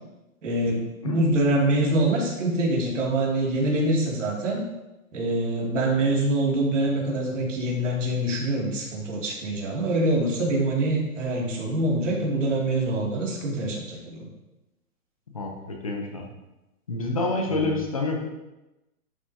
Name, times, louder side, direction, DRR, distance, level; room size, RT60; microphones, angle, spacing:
voice 1, 0.4-4.6 5.1-14.3 17.5-17.8, right 1 dB, 55° right, -3 dB, 2.4 m, -25 dB
voice 2, 15.3-16.3 16.9-18.2, left 2 dB, 25° left, 2 dB, 0.7 m, -28 dB
11.0 x 6.0 x 2.7 m, 0.98 s
hypercardioid pair, 175°, 45 cm